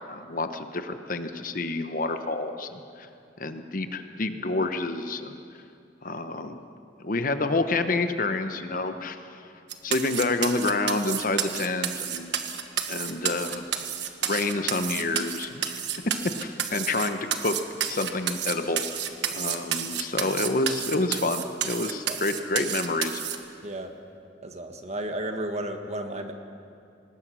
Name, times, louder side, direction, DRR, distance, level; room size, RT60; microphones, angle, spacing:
voice 1, 0.1-3.1 3.4-5.3 6.0-6.6 7.0-9.2 9.8-12.4 12.9-13.6 14.2-15.8 16.4-17.5 17.9-19.0 19.3-23.2, left 2 dB, 45° left, 8 dB, 1.1 m, -28 dB
sound 1, 9.7-23.4, right 9 dB, 65° right, 1.4 m, -30 dB
voice 2, 24.4-26.3, right 1 dB, 35° right, 5 dB, 1.6 m, -33 dB
25.0 x 20.0 x 6.3 m, 2.6 s
head